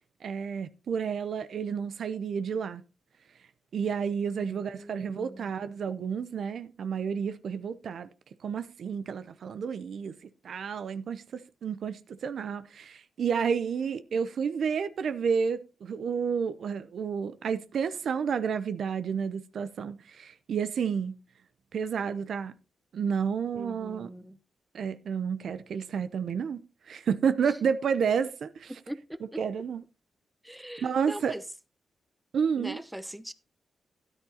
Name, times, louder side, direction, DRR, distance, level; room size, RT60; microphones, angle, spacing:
voice 1, 0.2-2.8 3.7-8.1 8.4-10.1 10.4-21.1 21.7-22.5 22.9-24.1 24.7-28.7 29.4-29.8 30.8-31.3 32.3-32.8, right 6 dB, 75° right, 0.6 m, -30 dB
voice 2, 4.3-5.5 23.5-24.4 27.5-27.6 28.9-29.4 30.4-31.4 32.6-33.3, right 1 dB, 10° right, 0.8 m, -41 dB
13.0 x 9.9 x 2.8 m
cardioid pair, 55°, 0 cm